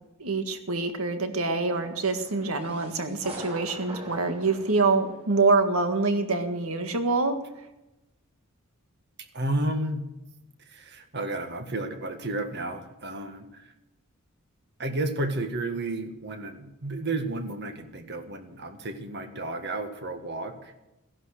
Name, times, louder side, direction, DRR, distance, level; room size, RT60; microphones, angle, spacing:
voice 1, 0.2-7.4, right 3 dB, 80° right, 7 dB, 1.7 m, -25 dB
sound 1, 1.6-5.7, right 2 dB, 25° right, 4.3 m, -44 dB
voice 2, 9.3-10.1 10.6-13.7 14.8-20.7, right 2 dB, 50° right, 7 dB, 1.7 m, -32 dB
15.5 x 11.0 x 6.6 m, 0.94 s
head